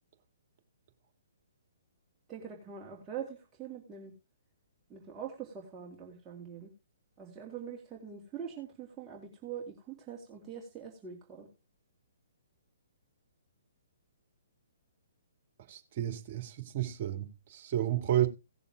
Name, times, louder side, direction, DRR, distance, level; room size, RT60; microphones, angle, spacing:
voice 1, 2.3-4.1 4.9-6.7 7.2-11.5, right 8 dB, 15° right, 2.6 m, -43 dB
voice 2, 15.7-18.3, right 12 dB, 40° right, 2.1 m, -31 dB
17.5 x 6.9 x 3.5 m
figure-of-eight pair, 130°, 0 cm